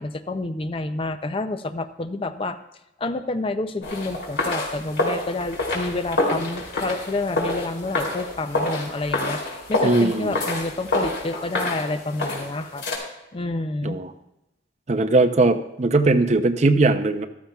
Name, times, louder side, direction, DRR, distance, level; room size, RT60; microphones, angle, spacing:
voice 1, 0.0-2.6 3.0-9.4 9.7-12.8 13.3-14.0, left 2 dB, 30° left, 11 dB, 0.4 m, -28 dB
sound 1, 3.8-13.0, left 2 dB, 80° left, 2.8 m, -27 dB
voice 2, 9.8-10.4 13.8-14.1 14.9-17.3, right 2 dB, 40° right, 8 dB, 0.6 m, -19 dB
14.5 x 13.0 x 2.3 m, 0.92 s
head